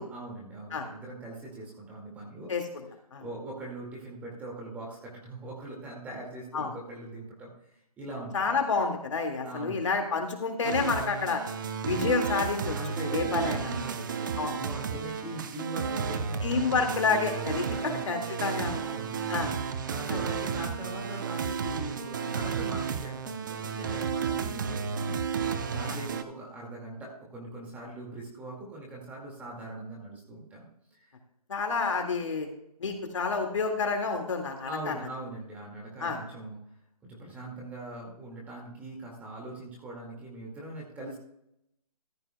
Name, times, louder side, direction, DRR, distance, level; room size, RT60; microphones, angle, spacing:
voice 1, 0.0-2.5 3.2-7.5 8.0-8.6 9.4-9.9 12.7-16.7 17.7-18.2 18.8-19.2 19.8-25.2 25.7-30.7 31.0-31.1 34.7-36.6 37.0-41.2, right 2 dB, 10° right, -2 dB, 2.0 m, -41 dB
voice 2, 2.5-2.8 3.1-3.2 6.5-6.7 8.3-11.4 11.8-12.8 13.1-13.7 14.4-14.5 16.4-18.8 19.3-19.5 20.1-20.2 25.9-26.0 31.5-32.5 32.8-34.9 36.0-36.2, left 4 dB, 50° left, 3 dB, 2.0 m, -29 dB
sound 1, 10.6-26.2, right 6 dB, 30° right, 0.7 m, -32 dB
14.5 x 12.0 x 2.2 m, 0.76 s
figure-of-eight pair, 155°, 20 cm